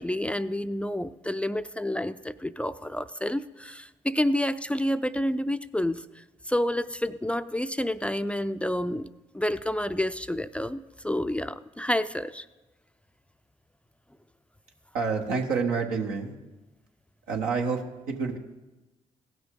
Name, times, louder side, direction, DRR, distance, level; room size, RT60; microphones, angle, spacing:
voice 1, 0.0-6.0 6.5-9.1 9.3-12.5, left 1 dB, 10° left, 12 dB, 0.4 m, -29 dB
voice 2, 14.9-16.3 17.3-18.4, right 5 dB, 85° right, 1 dB, 1.2 m, -28 dB
16.5 x 6.0 x 3.7 m, 1.1 s
hypercardioid pair, 45°, 15 cm